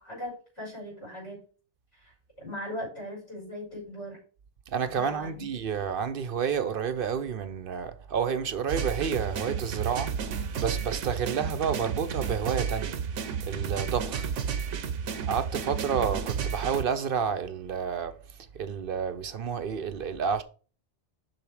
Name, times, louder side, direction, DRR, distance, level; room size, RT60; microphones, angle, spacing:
voice 1, 0.0-1.4 1.9-4.2 4.9-5.5, equal, 85° left, 5.2 m, -39 dB
voice 2, 4.7-13.0 13.4-14.3 15.3-18.2 18.5-20.4, right 7 dB, 55° right, 0.8 m, -30 dB
sound 1, 8.7-16.9, right 7 dB, 85° right, 1.1 m, -32 dB
6.9 x 5.7 x 4.8 m
omnidirectional pair, 1.2 m